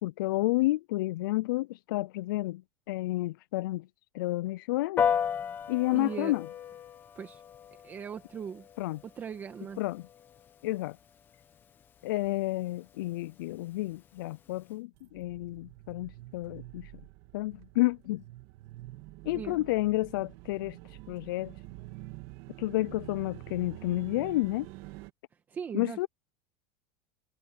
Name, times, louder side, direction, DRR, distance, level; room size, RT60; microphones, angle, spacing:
voice 1, 0.0-2.6 2.9-3.9 4.1-5.0 5.7-6.5 8.8-9.0 9.8-10.0 10.6-11.0 12.0-16.9 17.3-18.2 19.2-21.5 22.6-24.7 25.7-26.1, left 18 dB, 75° left, 0.4 m, -30 dB
Piano, 5.0-14.7, left 8 dB, 15° left, 1.2 m, -37 dB
voice 2, 5.9-6.3 7.1-7.4 7.8-8.7 9.0-9.8 19.3-19.6 25.5-26.0, right 7 dB, 15° right, 1.3 m, -39 dB
sound 1, 14.9-25.1, right 18 dB, 45° right, 2.1 m, -47 dB
supercardioid pair, 180°, 12 cm